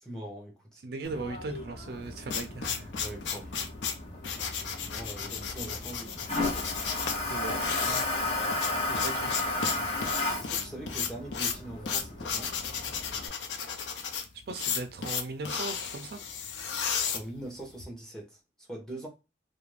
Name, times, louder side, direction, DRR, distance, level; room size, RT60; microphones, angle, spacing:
voice 1, 0.0-0.8 3.0-3.6 4.9-6.3 10.4-12.5 17.1-19.1, right 1 dB, 5° left, 0.8 m, -42 dB
voice 2, 0.8-2.9 7.3-8.0 8.9-9.3 14.5-16.3, right 3 dB, 55° right, 0.4 m, -38 dB
Toilet flush, 1.0-13.3, left 2 dB, 35° left, 0.7 m, -34 dB
sound 1, 1.9-17.8, left 6 dB, 80° left, 0.5 m, -34 dB
2.4 x 2.1 x 3.1 m
head